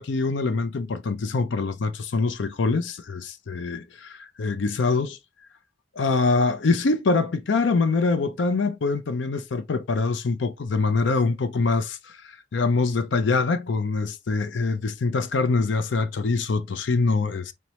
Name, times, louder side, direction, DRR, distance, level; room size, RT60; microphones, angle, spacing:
voice 1, 0.0-5.2 6.0-17.5, left 3 dB, 75° left, 0.5 m, -24 dB
4.4 x 3.1 x 2.9 m
head